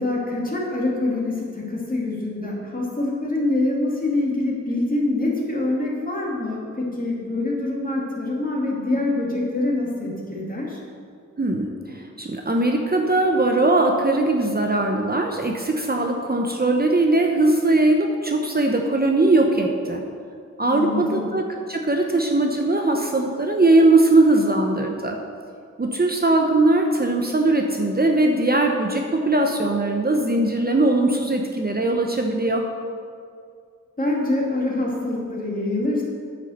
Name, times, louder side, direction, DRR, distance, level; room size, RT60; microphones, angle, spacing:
voice 1, 0.0-10.8 20.7-21.3 34.0-36.0, left 2 dB, 30° left, -3 dB, 2.7 m, -25 dB
voice 2, 11.4-20.0 20.6-25.2 25.8-32.6, right 2 dB, 30° right, 2 dB, 0.9 m, -20 dB
9.6 x 7.2 x 6.5 m, 2.3 s
wide cardioid pair, 75°, 30 cm